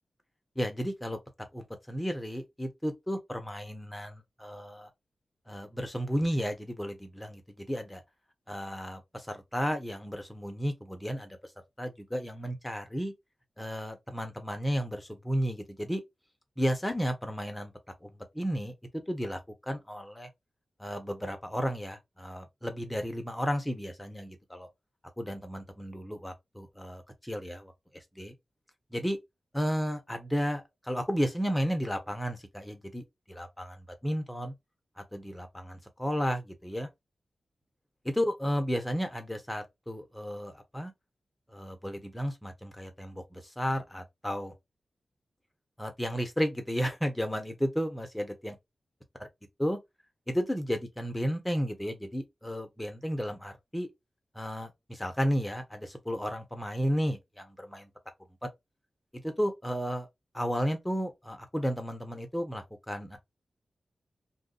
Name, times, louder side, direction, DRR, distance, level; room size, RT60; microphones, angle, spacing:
voice 1, 0.6-1.2 1.5-4.9 5.5-8.0 8.5-11.4 11.8-13.1 13.6-16.0 16.6-17.7 18.0-20.3 20.8-24.7 25.2-27.7 28.1-28.3 28.9-29.2 29.5-33.0 33.3-34.5 35.0-36.9 38.0-40.9 41.5-44.5 45.8-48.5 49.6-49.8 50.3-53.9 54.3-57.9 58.4-58.5 59.1-60.1 60.3-63.2, equal, 5° left, 0.9 m, -33 dB
2.6 x 2.2 x 3.8 m
wide cardioid pair, 85°, 0 cm